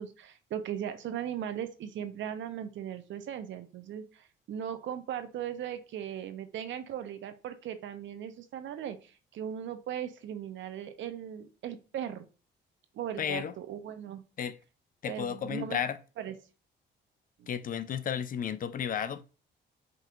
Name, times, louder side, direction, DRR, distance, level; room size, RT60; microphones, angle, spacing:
voice 1, 0.0-12.2 12.9-14.2 15.1-15.8 16.2-16.3 17.4-17.5, right 9 dB, 70° right, 0.7 m, -38 dB
voice 2, 13.2-13.5 14.4-14.6 15.0-16.0 17.5-19.2, left 8 dB, 45° left, 0.4 m, -33 dB
5.2 x 2.9 x 2.4 m
cardioid pair, 90°, 20 cm